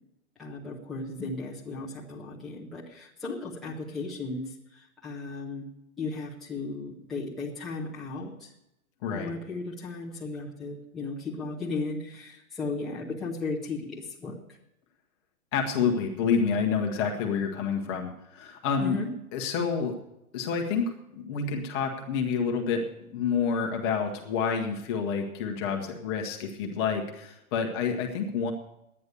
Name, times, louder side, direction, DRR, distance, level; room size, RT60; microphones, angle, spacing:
voice 1, 0.4-5.7 6.0-8.5 9.1-14.4 18.8-19.1, left 3 dB, ahead, -9 dB, 0.6 m, -35 dB
voice 2, 9.0-9.3 15.5-19.0 19.3-20.0 20.3-22.9 23.1-28.5, left 6 dB, 15° left, 2 dB, 1.0 m, -28 dB
11.0 x 9.7 x 6.7 m, 0.82 s
hypercardioid pair, 170°, 42 cm